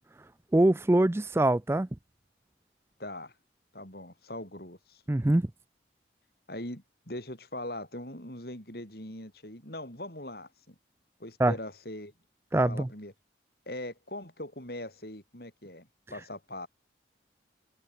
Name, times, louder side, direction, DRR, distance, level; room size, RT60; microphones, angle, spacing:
voice 1, 0.5-1.9 5.1-5.4 11.4-11.5 12.5-12.9, right 1 dB, 15° right, 0.4 m, -23 dB
voice 2, 3.0-3.3 3.7-5.0 6.5-10.7 11.2-12.1 12.7-13.1 13.7-16.7, left 1 dB, 55° left, 6.2 m, -41 dB
head